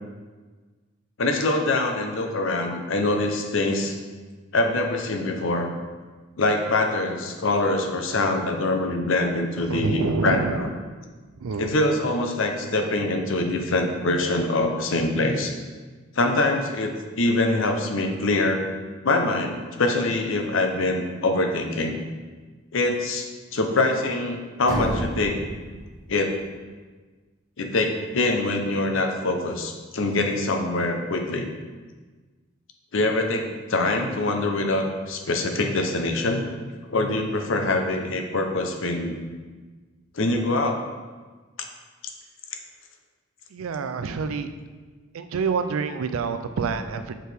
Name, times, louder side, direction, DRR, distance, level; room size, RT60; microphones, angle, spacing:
voice 1, 1.2-4.0 4.5-5.7 6.4-10.7 11.6-15.5 16.2-18.6 19.0-22.0 22.7-25.4 26.1-26.4 27.6-31.5 32.9-36.4 36.9-39.2 40.1-40.8, left 2 dB, 65° left, 4 dB, 0.7 m, -24 dB
voice 2, 9.6-10.6 11.4-11.8 43.5-44.5 45.1-47.2, right 5 dB, 80° right, 9 dB, 0.4 m, -27 dB
sound 1, 24.7-26.5, right 1 dB, 15° right, 0.9 m, -31 dB
6.1 x 4.6 x 3.4 m, 1.4 s
head